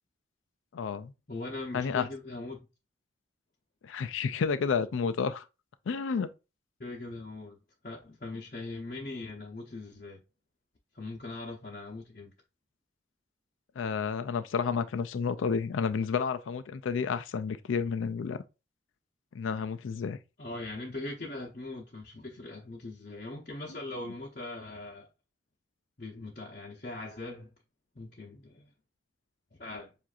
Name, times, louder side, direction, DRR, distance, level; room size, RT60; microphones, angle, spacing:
voice 1, 0.7-1.1 1.7-2.1 3.8-5.4 5.9-6.3 13.8-18.4 19.3-20.2, left 6 dB, 90° left, 0.4 m, -30 dB
voice 2, 1.3-2.7 6.8-7.6 7.8-10.2 10.9-12.3 20.4-25.1 26.0-27.5 27.9-28.7 29.5-29.9, left 2 dB, 45° left, 0.8 m, -40 dB
7.4 x 2.6 x 2.4 m
head